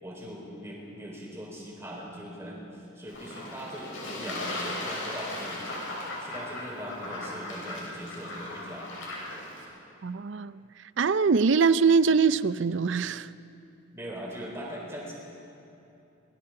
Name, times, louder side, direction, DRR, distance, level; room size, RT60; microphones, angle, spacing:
voice 1, 0.0-5.8 6.2-8.9 13.9-15.2, equal, 15° right, 4.5 m, -40 dB
Fowl / Bird / Water, 3.1-9.6, left 1 dB, 75° left, 6.2 m, -37 dB
voice 2, 10.0-10.6 11.0-13.3, right 5 dB, 65° right, 0.5 m, -23 dB
26.0 x 20.5 x 4.9 m
head